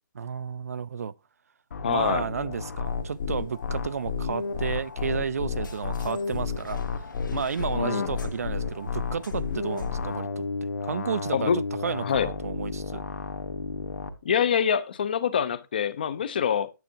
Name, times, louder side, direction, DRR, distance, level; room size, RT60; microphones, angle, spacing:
voice 1, 0.2-1.1 1.9-10.5 10.8-13.0, right 6 dB, 50° right, 0.4 m, -32 dB
sound 1, 1.7-14.1, left 5 dB, 50° left, 1.3 m, -32 dB
voice 2, 1.8-2.3 7.7-8.1 11.3-11.6 12.0-12.3 14.2-16.7, left 8 dB, 30° left, 0.5 m, -25 dB
sound 2, 2.8-10.2, left 4 dB, 80° left, 1.5 m, -48 dB
9.1 x 8.3 x 2.8 m
hypercardioid pair, 175°, 10 cm